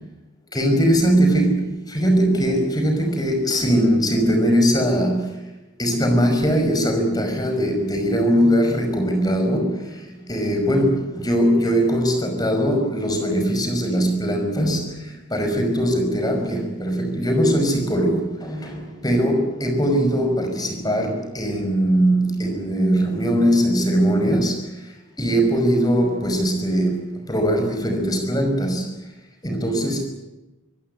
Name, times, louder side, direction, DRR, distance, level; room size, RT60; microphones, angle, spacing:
voice 1, 0.5-5.3 5.8-9.8 10.3-14.9 15.3-24.6 25.2-28.9 29.4-30.1, equal, 20° left, 5.5 m, -20 dB
25.5 x 17.0 x 9.6 m
head